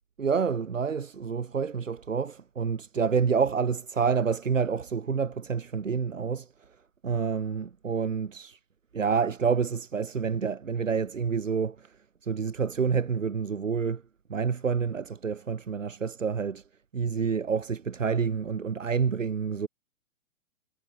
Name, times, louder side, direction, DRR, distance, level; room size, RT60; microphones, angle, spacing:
voice 1, 0.2-6.5 7.0-8.6 8.9-11.9 12.2-14.0 14.3-16.6 16.9-19.7, right 6 dB, 75° right, 1.4 m, -28 dB
figure-of-eight pair, 110°, 38 cm